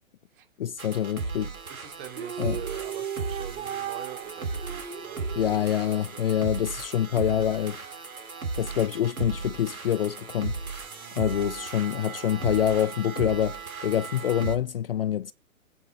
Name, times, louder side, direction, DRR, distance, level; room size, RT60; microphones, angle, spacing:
voice 1, 0.6-1.5 2.4-2.6 5.4-7.8 8.6-10.5 11.2-15.3, left 10 dB, 45° left, 0.4 m, -26 dB
sound 1, 0.8-14.6, right 4 dB, 90° right, 2.5 m, -36 dB
voice 2, 1.7-6.2 10.8-12.2, right 10 dB, 40° right, 2.9 m, -45 dB
sound 2, 2.1-6.4, right 9 dB, 60° right, 1.8 m, -37 dB
16.0 x 6.0 x 4.1 m
hypercardioid pair, 135°, 41 cm